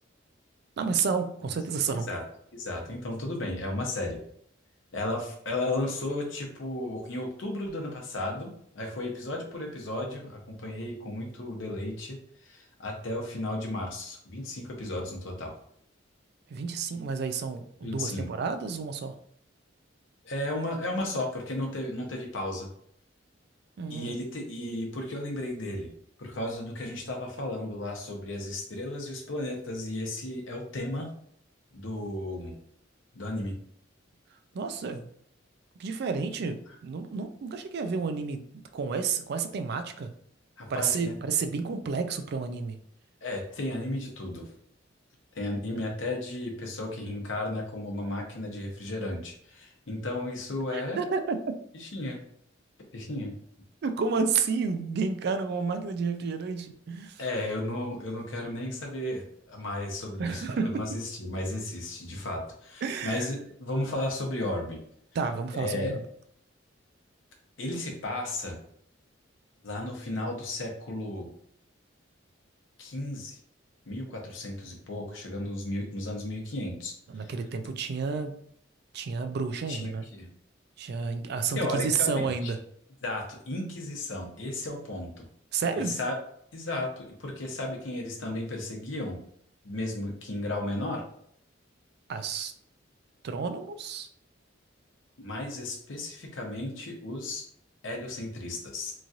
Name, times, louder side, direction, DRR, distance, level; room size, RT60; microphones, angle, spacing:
voice 1, 0.8-2.1 16.5-19.1 23.8-24.1 34.5-35.1 35.8-38.4 38.7-40.1 40.7-42.8 50.7-51.4 53.8-57.2 60.2-61.0 62.8-63.3 65.1-66.0 77.1-78.3 78.9-80.1 80.8-82.6 85.5-86.0 92.1-92.5 93.2-94.1, right 5 dB, 55° right, 8 dB, 0.3 m, -30 dB
voice 2, 1.9-2.2 2.5-4.2 4.9-15.5 17.8-18.3 20.2-22.7 23.9-25.9 26.2-31.1 31.7-32.5 33.1-33.6 36.7-36.8 40.6-41.2 43.2-44.5 45.3-51.0 51.8-52.2 52.9-53.3 57.2-64.8 65.6-65.9 67.6-68.6 69.6-71.3 72.8-73.4 73.9-77.3 79.7-80.3 81.5-82.5 83.0-85.1 85.7-86.1 86.5-89.2 89.6-91.0 95.2-97.4 97.8-98.9, left 1 dB, 75° left, 1 dB, 0.8 m, -34 dB
3.0 x 2.4 x 2.6 m, 0.66 s
head